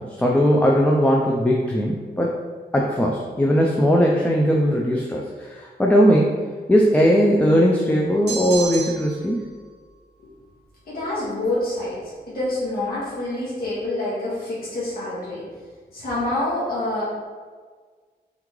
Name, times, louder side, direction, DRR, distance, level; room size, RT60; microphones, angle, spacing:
voice 1, 0.0-2.3 2.7-6.4 6.7-9.5, equal, 10° left, -2 dB, 0.3 m, -19 dB
sound 1, 8.3-9.3, right 4 dB, 85° right, 0.7 m, -31 dB
voice 2, 10.9-12.0 12.3-15.4 15.9-17.0, left 1 dB, 65° left, -9 dB, 1.4 m, -26 dB
3.6 x 3.1 x 3.7 m, 1.5 s
wide cardioid pair, 150°, 17 cm